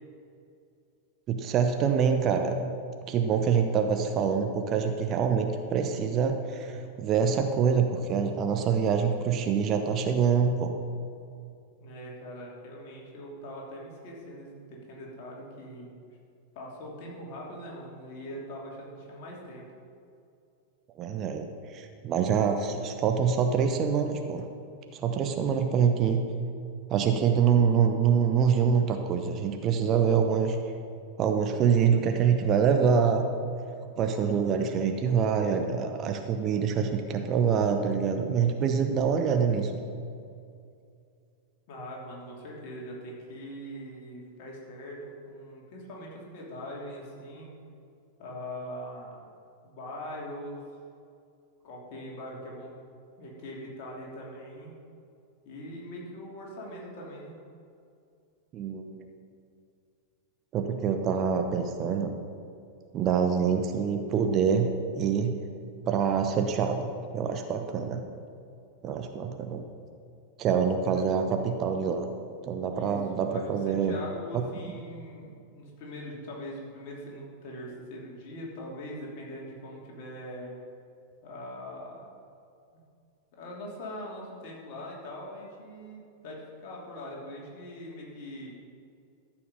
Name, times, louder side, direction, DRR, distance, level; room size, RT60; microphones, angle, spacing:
voice 1, 1.3-2.5 3.1-10.7 21.0-24.4 24.9-26.2 26.9-30.6 31.2-33.2 34.0-39.7 58.5-59.0 60.5-62.1 62.9-64.7 65.0-65.3 65.9-66.9 67.1-68.0 68.8-69.6 70.4-72.0 72.4-73.9, right 6 dB, 35° right, 5 dB, 0.9 m, -25 dB
voice 2, 11.8-15.9 16.5-19.6 41.7-47.5 48.2-49.3 49.6-50.7 51.6-52.8 53.2-54.7 55.4-57.4 71.0-71.1 72.7-80.5 81.2-82.1 83.3-88.5, equal, 45° left, -3 dB, 3.1 m, -42 dB
14.0 x 5.9 x 6.6 m, 2.4 s
figure-of-eight pair, 90°, 0 cm